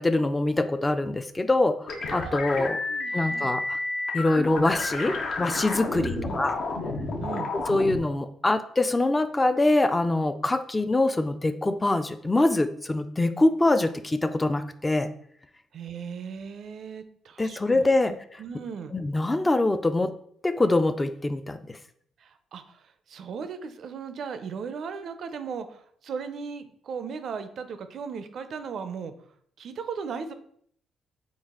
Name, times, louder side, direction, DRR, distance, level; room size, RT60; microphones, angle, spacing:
voice 1, 0.0-2.8 3.1-3.8 4.1-6.6 7.5-15.1 17.4-18.1 18.9-20.1 20.4-21.8, left 2 dB, 20° left, 11 dB, 0.3 m, -24 dB
sound 1, 1.9-8.0, left 3 dB, 65° left, 0.7 m, -31 dB
voice 2, 2.9-3.5 5.9-6.4 7.2-7.5 15.7-18.9 22.2-29.1 29.6-30.3, right 6 dB, 60° right, 10 dB, 0.4 m, -37 dB
3.9 x 2.4 x 3.5 m, 0.64 s
cardioid pair, 90°, 0 cm